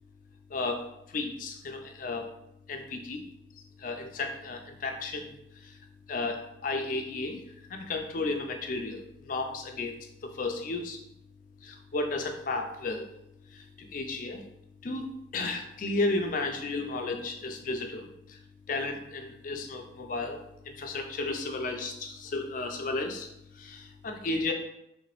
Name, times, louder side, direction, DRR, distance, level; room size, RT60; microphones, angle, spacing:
voice 1, 0.5-2.3 2.7-3.2 3.8-5.8 6.1-7.4 7.7-9.9 10.2-11.0 11.6-13.1 13.5-14.4 14.8-18.4 18.7-23.3 23.6-24.5, left 3 dB, 45° left, 4 dB, 0.4 m, -33 dB
3.2 x 2.9 x 3.0 m, 0.83 s
head